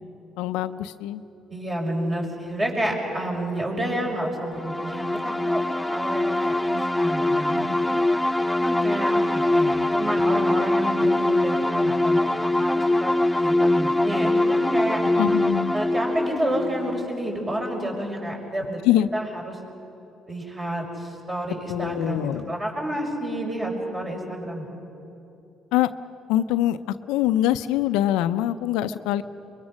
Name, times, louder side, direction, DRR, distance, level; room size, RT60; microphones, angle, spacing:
voice 1, 0.4-1.2 15.0-15.7 18.8-19.1 21.7-22.6 25.7-25.9 26.3-29.2, left 13 dB, 85° left, 11 dB, 0.5 m, -24 dB
voice 2, 1.5-5.6 5.9-7.7 7.9-8.0 8.6-15.0 15.7-18.8 19.1-19.6 20.3-24.7, right 1 dB, 30° right, 0 dB, 5.9 m, -29 dB
sound 1, 4.6-18.1, left 1 dB, 5° left, 0.4 m, -23 dB
24.0 x 22.0 x 6.4 m, 2.9 s
supercardioid pair, 70°, 0 cm